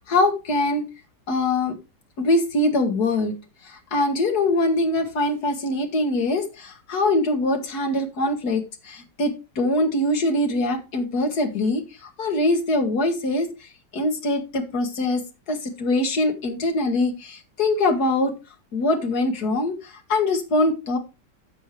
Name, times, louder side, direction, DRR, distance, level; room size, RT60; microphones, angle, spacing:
voice 1, 0.1-0.8 1.3-1.8 2.2-3.3 3.6-15.2 15.5-18.3 18.7-21.0, left 2 dB, 60° left, 5 dB, 2.2 m, -23 dB
12.0 x 7.4 x 3.3 m, 0.28 s
omnidirectional pair, 2.0 m